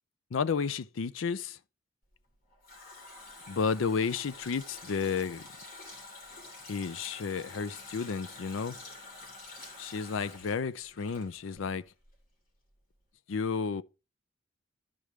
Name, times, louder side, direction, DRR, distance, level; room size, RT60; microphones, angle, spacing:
voice 1, 0.3-1.6 3.5-5.4 6.7-8.8 9.8-11.8 13.3-13.8, left 5 dB, 75° left, 0.5 m, -32 dB
Water tap faucet, 2.2-11.8 12.0-12.2, left 2 dB, 45° left, 3.1 m, -48 dB
12.5 x 5.1 x 3.1 m
head